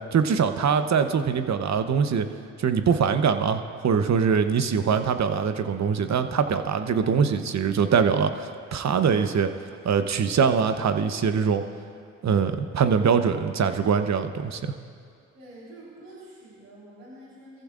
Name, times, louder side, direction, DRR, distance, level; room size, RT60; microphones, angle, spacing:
voice 1, 0.1-2.3 2.6-9.5 9.8-11.6 12.2-14.6, right 6 dB, 50° right, 8 dB, 1.0 m, -23 dB
voice 2, 15.3-17.6, right 1 dB, 85° right, -7 dB, 4.1 m, -47 dB
23.0 x 14.5 x 2.6 m, 2.2 s
supercardioid pair, 50°, 34 cm